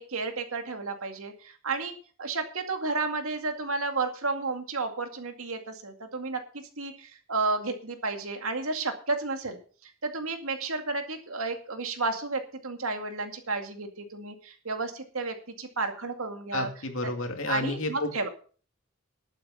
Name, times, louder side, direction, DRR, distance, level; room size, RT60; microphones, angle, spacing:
voice 1, 0.0-9.6 9.8-16.7 17.0-17.1 17.5-18.3, right 3 dB, 70° right, 5 dB, 2.2 m, -32 dB
voice 2, 16.5-18.3, left 2 dB, 65° left, 5 dB, 2.4 m, -31 dB
11.5 x 9.1 x 5.6 m, 0.41 s
head